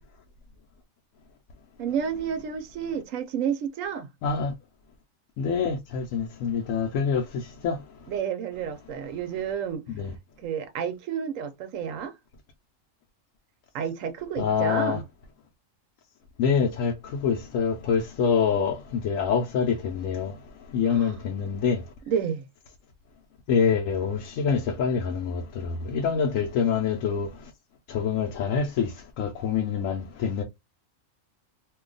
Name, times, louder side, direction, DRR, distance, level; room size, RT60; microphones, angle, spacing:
voice 1, 1.8-4.1 8.1-9.8 10.4-12.1 13.7-15.0 20.9-21.1 22.1-22.5, right 7 dB, 80° right, 1.0 m, -30 dB
voice 2, 4.2-4.5 5.4-7.2 7.6-7.8 9.9-10.1 14.4-15.0 16.4-20.3 20.7-21.8 23.5-27.3 27.9-28.9 29.2-30.4, left 6 dB, 80° left, 1.0 m, -25 dB
2.7 x 2.3 x 3.8 m
omnidirectional pair, 1.4 m